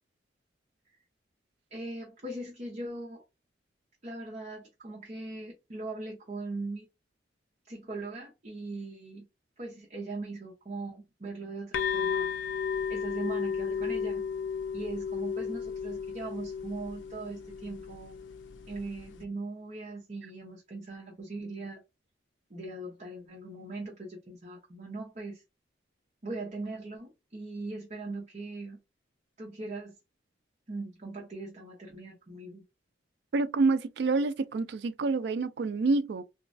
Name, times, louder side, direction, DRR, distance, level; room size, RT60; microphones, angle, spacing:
voice 1, 1.7-3.2 4.0-6.9 7.7-9.2 9.6-12.6 12.9-14.2 14.7-18.2 18.7-21.8 22.5-25.4 26.2-28.8 29.4-29.9 30.7-32.6, right 2 dB, 40° right, 0.7 m, -40 dB
sound 1, 11.7-19.2, left 6 dB, 80° left, 0.4 m, -34 dB
voice 2, 33.3-36.2, right 3 dB, 60° right, 0.3 m, -27 dB
3.0 x 2.3 x 2.5 m
head